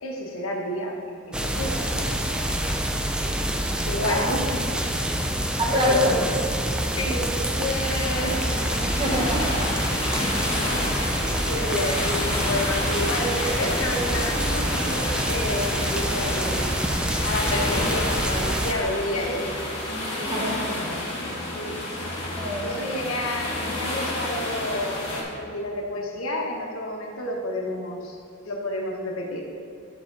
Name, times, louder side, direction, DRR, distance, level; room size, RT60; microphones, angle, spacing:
voice 1, 0.0-2.2 3.8-4.6 5.7-6.3 6.8-8.9 11.5-16.6 17.2-19.6 21.5-21.8 22.6-28.2 28.4-29.4, left 1 dB, 85° left, 0 dB, 1.1 m, -30 dB
sound 1, 1.3-18.7, right 1 dB, 5° right, 0.3 m, -26 dB
voice 2, 4.0-4.3 5.6-6.1 8.8-9.8 19.8-21.1 22.3-22.8, equal, 20° right, -2 dB, 1.0 m, -27 dB
sound 2, 8.0-25.2, left 1 dB, 30° left, 1.5 m, -30 dB
7.5 x 5.9 x 3.8 m, 2.5 s
head